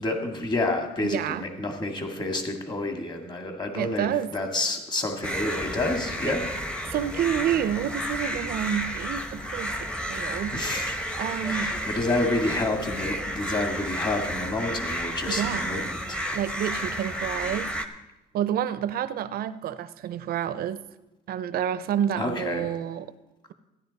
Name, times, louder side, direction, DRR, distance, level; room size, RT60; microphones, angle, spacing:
voice 1, 0.0-6.4 10.5-11.2 11.4-16.2 22.2-22.7, left 2 dB, 25° left, 4 dB, 2.0 m, -29 dB
voice 2, 1.0-1.4 3.8-4.3 6.3-6.4 6.9-10.6 11.2-11.8 15.3-15.7 16.3-17.7 18.3-20.8 21.3-23.1, right 10 dB, 65° right, 14 dB, 0.6 m, -29 dB
sound 1, 5.2-17.9, equal, 5° left, 1.0 m, -32 dB
14.5 x 10.5 x 4.1 m, 0.99 s
cardioid pair, 110°, 17 cm